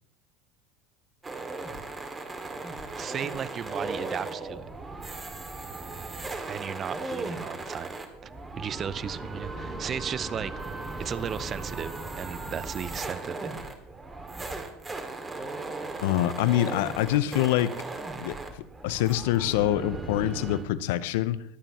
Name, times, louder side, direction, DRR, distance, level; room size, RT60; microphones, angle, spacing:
sound 1, 1.2-20.6, right 3 dB, 20° right, 2.2 m, -37 dB
voice 1, 2.9-4.7 6.5-7.9 8.2-8.3 8.6-10.5 11.0-13.5, right 8 dB, 35° right, 0.5 m, -35 dB
voice 2, 16.0-17.7 18.2-18.4 18.8-21.4, left 13 dB, 70° left, 0.6 m, -25 dB
22.5 x 8.9 x 3.0 m
hypercardioid pair, 85°, 0 cm